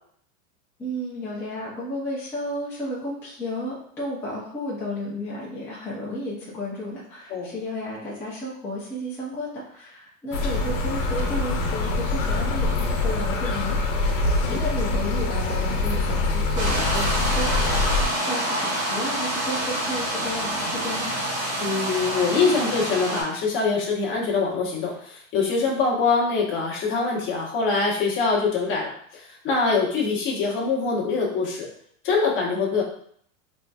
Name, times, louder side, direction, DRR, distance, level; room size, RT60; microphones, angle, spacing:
voice 1, 0.8-13.8 14.1-17.5 17.9-21.1, left 1 dB, 5° left, -7 dB, 0.4 m, -33 dB
sound 1, 10.3-18.0, left 3 dB, 65° left, 0.8 m, -24 dB
sound 2, 16.6-23.2, right 1 dB, 35° right, 1.5 m, -27 dB
voice 2, 21.6-31.7 32.0-32.8, left 4 dB, 30° left, -3 dB, 1.0 m, -24 dB
3.7 x 2.6 x 2.3 m, 0.63 s
supercardioid pair, 145°, 40 cm